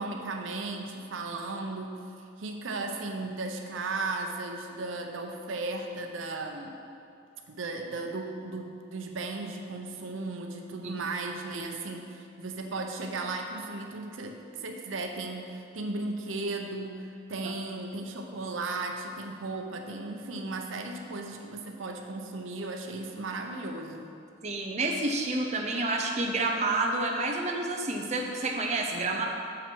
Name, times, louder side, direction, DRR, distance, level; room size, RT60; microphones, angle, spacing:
voice 1, 0.0-2.0 2.4-6.8 7.5-24.1, right 3 dB, 80° right, 3 dB, 0.7 m, -36 dB
voice 2, 24.4-29.3, right 2 dB, 35° right, 1 dB, 0.5 m, -29 dB
6.9 x 5.7 x 5.2 m, 2.5 s
head